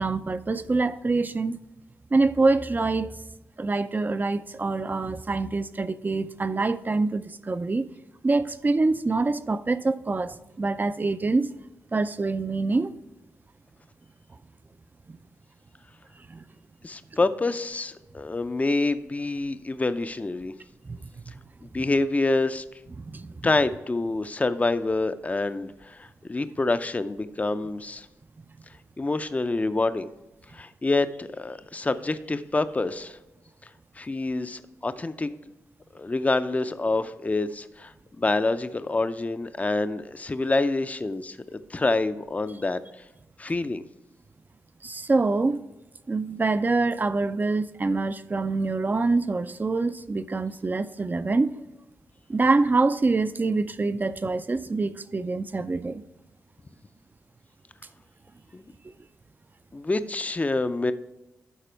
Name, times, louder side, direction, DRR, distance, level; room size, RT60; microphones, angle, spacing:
voice 1, 0.0-1.6 2.1-3.2 3.6-7.9 8.2-11.5 11.9-13.0 15.1-15.2 16.3-16.4 20.8-21.0 23.0-23.5 44.8-45.6 46.1-51.6 52.3-56.0, right 3 dB, 30° right, 0.5 m, -25 dB
voice 2, 16.8-20.5 21.6-22.6 23.4-28.1 29.0-30.1 30.5-33.2 34.0-35.3 35.9-42.8 43.4-43.8 58.5-58.6 59.7-60.9, left 2 dB, 25° left, 0.5 m, -27 dB
12.0 x 4.1 x 4.5 m
cardioid pair, 55°, 6 cm